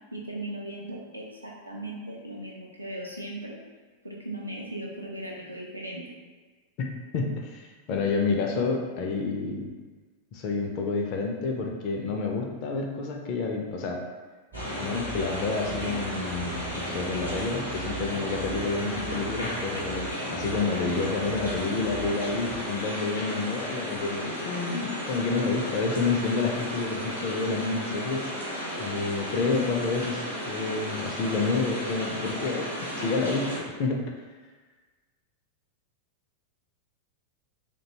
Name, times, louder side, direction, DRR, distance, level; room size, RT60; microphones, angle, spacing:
voice 1, 0.1-3.6 4.0-6.0, right 1 dB, 90° right, -3 dB, 0.4 m, -38 dB
voice 2, 7.1-9.7 10.3-14.0 14.6-28.2 28.8-32.6 33.0-34.0, left 4 dB, 40° left, 1 dB, 0.4 m, -29 dB
sound 1, 14.5-33.6, equal, 85° left, 0.7 m, -34 dB
sound 2, 14.5-22.7, right 2 dB, 40° right, 0.6 m, -40 dB
2.5 x 2.2 x 2.7 m, 1.4 s
figure-of-eight pair, 90°, 0 cm